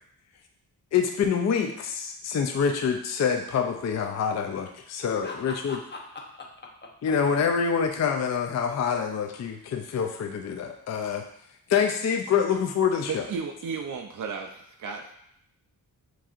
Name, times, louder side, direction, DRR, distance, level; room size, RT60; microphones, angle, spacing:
voice 1, 0.9-5.8 7.0-11.2 11.7-13.2, left 7 dB, 45° left, 5 dB, 0.4 m, -26 dB
voice 2, 5.2-6.9, left 3 dB, 30° left, -1 dB, 0.8 m, -41 dB
voice 3, 13.1-15.1, right 5 dB, 55° right, 2 dB, 0.4 m, -34 dB
7.3 x 2.7 x 2.4 m, 0.72 s
wide cardioid pair, 105°, 38 cm